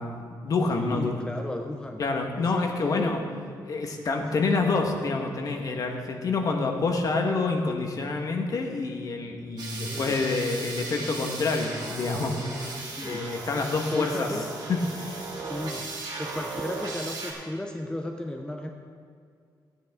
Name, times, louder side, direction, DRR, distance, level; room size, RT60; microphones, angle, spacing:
voice 1, 0.0-1.2 2.0-3.2 3.6-14.3 14.7-15.3, left 3 dB, 50° left, 2 dB, 1.3 m, -28 dB
voice 2, 0.8-2.0 2.4-3.2 9.8-10.1 12.8-13.3 13.7-14.5 15.5-15.9 16.2-18.7, left 1 dB, 10° left, 3 dB, 0.6 m, -34 dB
sound 1, 9.6-17.3, right 3 dB, 70° right, 2.8 m, -36 dB
14.0 x 9.7 x 3.6 m, 2.1 s
wide cardioid pair, 140°, 8 cm